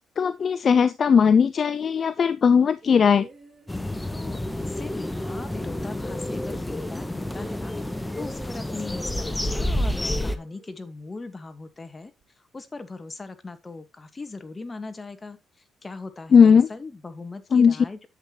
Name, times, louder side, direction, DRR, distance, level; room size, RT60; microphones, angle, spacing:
voice 1, 0.2-3.3 16.3-16.7 17.5-17.8, left 6 dB, 50° left, 0.6 m, -18 dB
sound 1, 2.8-11.2 12.2-12.3, right 4 dB, 35° right, 6.4 m, -50 dB
sound 2, 3.7-10.4, left 1 dB, 10° left, 1.1 m, -29 dB
voice 2, 4.1-7.8 8.1-18.1, left 3 dB, 25° left, 1.7 m, -39 dB
10.0 x 8.0 x 3.0 m
cardioid pair, 90°, 0 cm